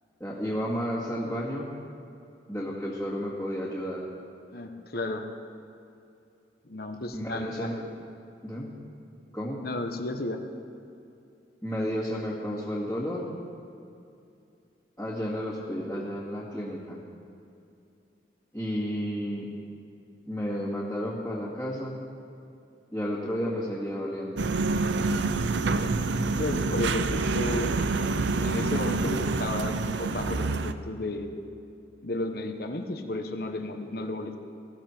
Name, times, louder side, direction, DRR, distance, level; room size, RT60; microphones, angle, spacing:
voice 1, 0.2-1.7 2.5-4.1 7.1-7.8 8.4-8.7 9.3-9.6 11.6-13.3 15.0-17.0 18.5-19.5 20.3-22.0 22.9-24.4 27.1-27.2, equal, 10° left, -10 dB, 2.1 m, -32 dB
voice 2, 4.5-5.2 6.6-7.7 9.6-10.4 26.4-27.8 28.1-31.3 32.0-34.4, left 2 dB, 55° left, 5 dB, 1.2 m, -33 dB
sound 1, 24.4-30.7, right 3 dB, 70° right, 0.6 m, -27 dB
19.5 x 15.5 x 4.5 m, 2.6 s
head